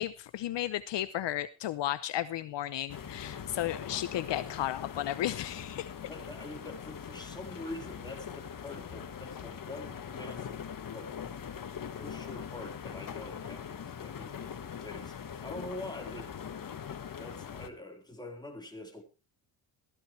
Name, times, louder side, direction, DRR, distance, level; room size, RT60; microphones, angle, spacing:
voice 1, 0.0-5.9, left 12 dB, 65° left, 0.8 m, -34 dB
sound 1, 2.9-17.7, left 7 dB, 45° left, 1.6 m, -42 dB
voice 2, 6.0-11.4 12.0-16.3 17.2-19.0, left 2 dB, 10° left, 4.3 m, -45 dB
15.0 x 14.5 x 3.3 m
cardioid pair, 95°, 46 cm